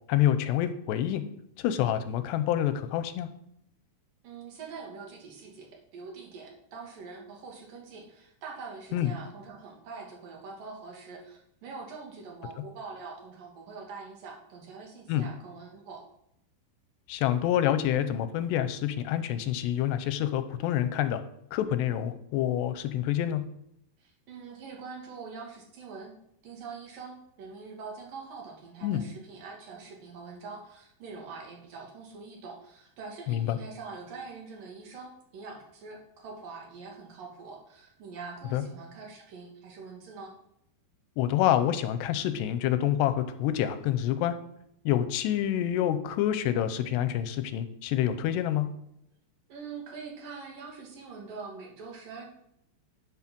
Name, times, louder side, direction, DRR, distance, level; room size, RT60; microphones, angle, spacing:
voice 1, 0.1-1.2 1.6-3.3 8.9-9.1 15.1-15.3 17.1-21.2 21.5-23.4 28.8-29.0 33.3-33.6 38.5-38.6 41.2-44.4 44.9-48.7, left 11 dB, 85° left, 11 dB, 3.0 m, -27 dB
voice 2, 4.2-16.0 24.0-26.2 26.4-40.3 49.5-52.3, right 4 dB, 60° right, -1 dB, 3.7 m, -44 dB
9.6 x 9.2 x 6.1 m, 0.76 s
omnidirectional pair, 4.8 m